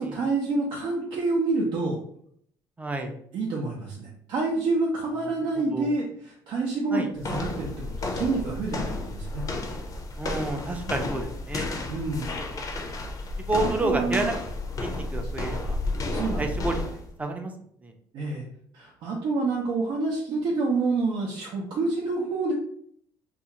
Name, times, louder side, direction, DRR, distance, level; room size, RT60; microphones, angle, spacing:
voice 1, 0.0-2.0 3.3-9.4 11.9-12.3 13.6-14.3 16.1-16.5 17.2-17.3 18.1-18.5 18.7-22.5, right 3 dB, 65° right, -3 dB, 0.6 m, -28 dB
voice 2, 2.8-3.1 5.6-5.9 6.9-7.1 10.2-11.7 13.4-14.3 14.8-15.8 16.4-16.8 17.2-17.5 17.8-17.9, right 2 dB, 15° right, 4 dB, 0.5 m, -29 dB
sound 1, 7.2-17.1, left 2 dB, 40° left, 0.5 m, -32 dB
2.4 x 2.3 x 2.9 m, 0.66 s
cardioid pair, 95°, 9 cm